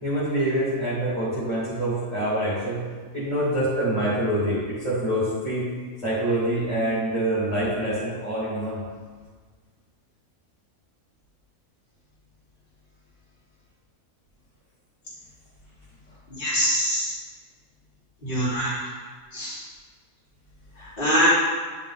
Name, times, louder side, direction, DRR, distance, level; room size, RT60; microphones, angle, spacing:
voice 1, 0.0-2.8 3.1-5.7 6.0-8.8, right 1 dB, 5° left, -9 dB, 2.3 m, -25 dB
voice 2, 16.4-17.1 18.2-18.7 19.3-19.6 20.8-21.3, equal, 35° left, -10 dB, 3.1 m, -23 dB
10.0 x 5.4 x 4.2 m, 1.5 s
omnidirectional pair, 1.6 m